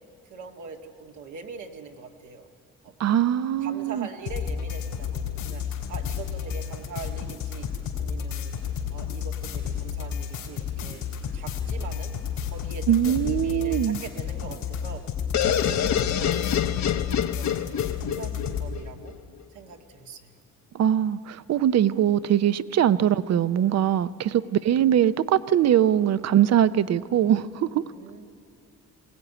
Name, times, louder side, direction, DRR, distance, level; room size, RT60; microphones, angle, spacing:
voice 1, 0.3-2.5 2.8-2.9 3.6-5.6 5.9-7.7 8.0-8.6 8.9-11.0 11.3-12.1 12.5-15.0 15.4-16.7 17.2-17.7 18.0-19.2 19.5-20.4 27.8-28.2, right 5 dB, 75° right, 1.8 m, -42 dB
voice 2, 3.0-4.1 12.9-14.0 20.7-27.8, right 10 dB, 60° right, 0.7 m, -22 dB
sound 1, 4.2-18.7, left 7 dB, 85° left, 3.8 m, -32 dB
sound 2, 15.3-19.1, left 9 dB, 65° left, 1.0 m, -26 dB
22.0 x 16.5 x 9.9 m
cardioid pair, 90°, 30 cm